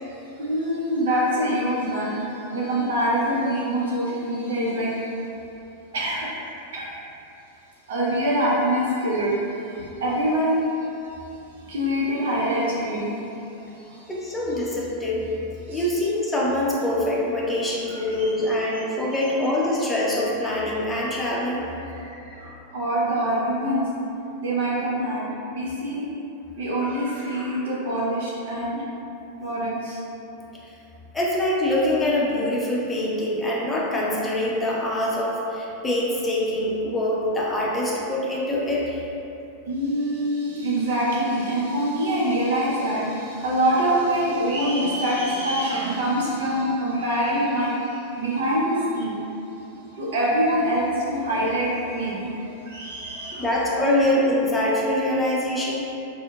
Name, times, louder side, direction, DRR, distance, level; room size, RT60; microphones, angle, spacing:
voice 1, 0.0-5.1 5.9-6.3 6.7-6.9 7.9-10.7 11.6-13.2 13.6-14.2 15.7-15.9 17.9-18.8 19.2-19.3 20.4-20.5 21.1-21.2 21.8-23.9 24.4-26.1 26.5-28.8 29.4-30.0 39.7-49.2 49.9-53.5, right 1 dB, 60° right, -5 dB, 0.6 m, -25 dB
voice 2, 14.1-15.3 15.7-21.7 31.1-39.0 53.4-55.9, left 1 dB, 10° left, -5 dB, 0.6 m, -24 dB
4.3 x 2.0 x 2.3 m, 2.8 s
figure-of-eight pair, 90°, 0 cm